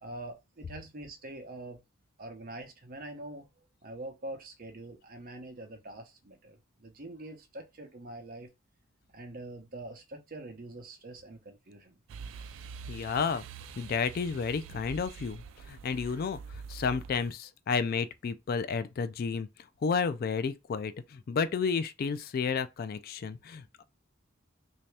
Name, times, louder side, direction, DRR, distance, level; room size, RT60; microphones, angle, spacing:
voice 1, 0.0-1.8 2.2-3.5 3.8-8.5 9.1-12.0, right 1 dB, 45° right, 0.8 m, -44 dB
sound 1, 12.1-17.3, right 6 dB, 70° right, 0.3 m, -45 dB
voice 2, 12.9-13.4 13.8-19.5 19.8-23.8, left 5 dB, 50° left, 0.3 m, -31 dB
3.3 x 2.7 x 3.2 m
head